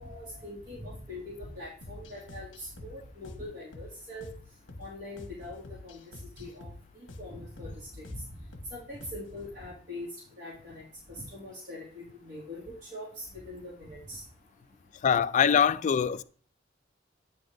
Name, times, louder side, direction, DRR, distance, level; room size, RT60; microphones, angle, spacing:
voice 1, 0.0-4.3 4.8-6.0 6.4-8.2 8.7-10.1 10.4-14.2, left 1 dB, 45° right, 2.7 m, -42 dB
sound 1, 1.8-9.4, left 1 dB, 80° left, 1.3 m, -48 dB
voice 2, 15.0-16.2, left 7 dB, 40° left, 0.3 m, -23 dB
9.2 x 3.9 x 5.1 m
head